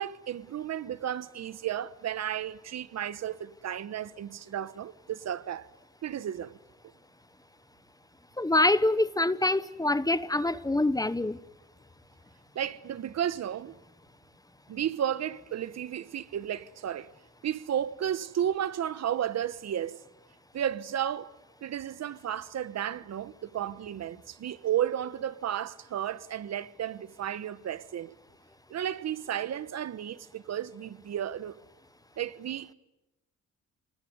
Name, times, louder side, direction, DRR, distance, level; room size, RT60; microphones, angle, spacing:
voice 1, 0.0-5.7 6.0-6.6 12.5-13.7 14.7-17.1 17.4-20.0 20.5-21.3 21.6-28.1 28.7-31.6 32.2-32.7, right 10 dB, 60° right, 1.2 m, -33 dB
voice 2, 8.4-11.4, left 2 dB, 10° left, 1.1 m, -25 dB
29.0 x 20.0 x 9.5 m
cardioid pair, 90°, 30 cm